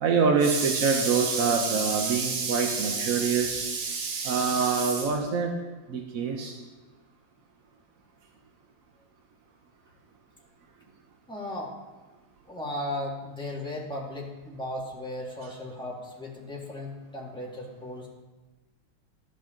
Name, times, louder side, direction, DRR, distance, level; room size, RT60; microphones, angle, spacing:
voice 1, 0.0-5.5 5.9-6.5, right 5 dB, 60° right, 2 dB, 0.9 m, -25 dB
voice 2, 11.3-11.8 12.5-18.1, left 1 dB, ahead, -4 dB, 1.6 m, -36 dB
12.0 x 8.9 x 3.8 m, 1.2 s
omnidirectional pair, 2.4 m